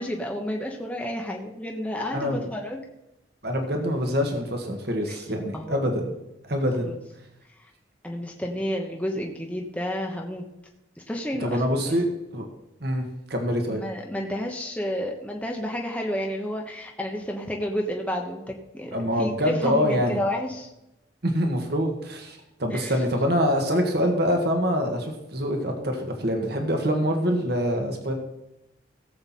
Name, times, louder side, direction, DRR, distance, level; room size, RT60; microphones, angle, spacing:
voice 1, 0.0-2.8 5.1-5.2 5.5-5.9 6.8-7.0 7.6-7.7 8.0-10.4 11.0-11.9 13.6-20.7 22.7-23.0, equal, 5° left, 0 dB, 1.1 m, -31 dB
voice 2, 3.4-6.0 6.5-6.9 11.4-12.0 12.3-12.4 12.8-13.8 18.9-20.2 21.2-28.1, equal, 55° right, 3 dB, 1.7 m, -25 dB
16.5 x 7.8 x 4.3 m, 0.91 s
head